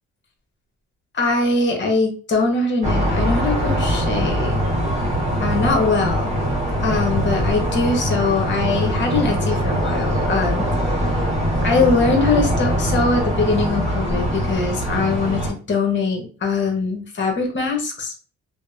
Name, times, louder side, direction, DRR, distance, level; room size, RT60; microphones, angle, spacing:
voice 1, 1.1-4.6 5.4-6.3 6.8-10.6 11.6-15.4 15.7-18.1, left 3 dB, 40° left, 3 dB, 0.9 m, -22 dB
sound 1, 2.8-15.5, equal, 20° right, 1.2 m, -22 dB
2.7 x 2.0 x 2.4 m, 0.39 s
cardioid pair, 90°, 30 cm